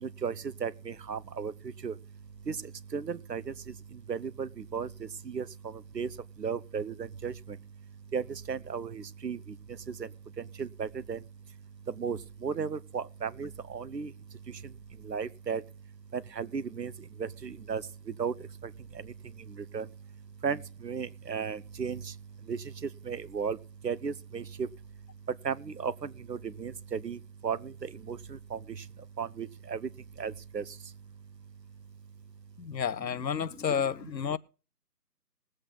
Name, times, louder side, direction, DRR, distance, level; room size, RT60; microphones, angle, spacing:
voice 1, 0.0-1.5 1.8-1.9 2.5-2.6 2.9-3.4 4.1-6.1 6.4-7.6 8.1-9.4 9.9-10.1 10.6-11.2 12.0-14.1 15.0-15.6 16.1-16.9 17.2-17.8 18.2-18.3 19.7-19.9 20.4-22.1 22.5-23.6 23.8-24.7 25.4-27.2 27.4-28.6 29.2-29.9 30.2-30.6, right 6 dB, 75° right, 1.0 m, -35 dB
voice 2, 32.6-34.4, left 7 dB, 85° left, 0.8 m, -31 dB
20.0 x 7.9 x 3.9 m
figure-of-eight pair, 180°, 50 cm